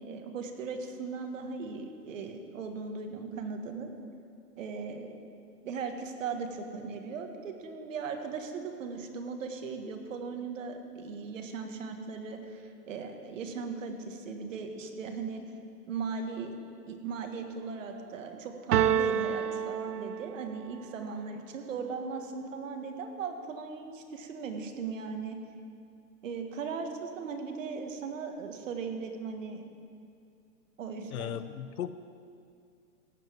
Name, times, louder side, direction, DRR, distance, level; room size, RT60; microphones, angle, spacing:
voice 1, 0.0-3.9 4.6-5.3 5.6-15.4 15.9-16.6 16.9-25.4 26.2-29.7 30.8-31.4, right 5 dB, 55° right, 5 dB, 1.6 m, -38 dB
sound 1, 18.7-20.7, right 9 dB, 75° right, 0.8 m, -28 dB
voice 2, 31.1-31.9, left 9 dB, 65° left, 13 dB, 0.7 m, -36 dB
16.0 x 5.4 x 9.1 m, 2.4 s
hypercardioid pair, 170°, 48 cm